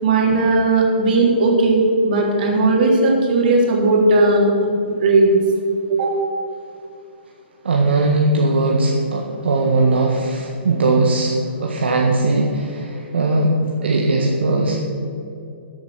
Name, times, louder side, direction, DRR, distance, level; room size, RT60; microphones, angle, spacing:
voice 1, 0.0-4.5 5.0-5.3 5.9-6.2, right 2 dB, 50° right, -1 dB, 3.5 m, -16 dB
voice 2, 7.6-13.6 13.8-14.8, right 2 dB, 70° right, 0 dB, 1.6 m, -19 dB
13.5 x 8.4 x 6.1 m, 2.7 s
figure-of-eight pair, 125°, 6 cm